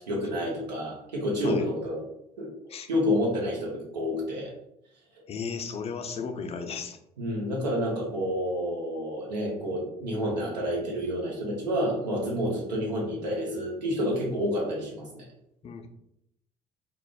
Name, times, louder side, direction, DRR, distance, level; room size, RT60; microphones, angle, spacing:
voice 1, 0.0-2.0 2.4-2.5 2.9-4.5 7.2-15.2, equal, 85° right, -3 dB, 0.8 m, -29 dB
voice 2, 5.3-7.0 15.6-15.9, left 5 dB, 30° left, 6 dB, 0.4 m, -35 dB
2.3 x 2.0 x 3.4 m, 0.76 s
figure-of-eight pair, 55°, 21 cm